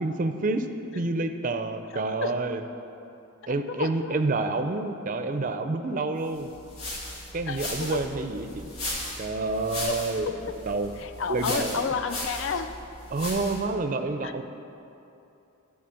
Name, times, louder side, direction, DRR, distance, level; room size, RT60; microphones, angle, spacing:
voice 1, 0.0-0.7 0.9-2.6 3.5-6.5 7.3-8.7 9.2-10.3 10.7-10.9 11.3-11.9 13.1-14.4, right 3 dB, 40° right, 8 dB, 0.4 m, -28 dB
voice 2, 1.9-2.3 3.7-4.1 7.5-8.0 9.9-10.0 11.0-12.8 14.2-14.3, left 6 dB, 60° left, 9 dB, 0.4 m, -31 dB
sound 1, 6.3-13.7, left 1 dB, 90° left, 2.1 m, -37 dB
12.0 x 4.0 x 7.5 m, 2.8 s
head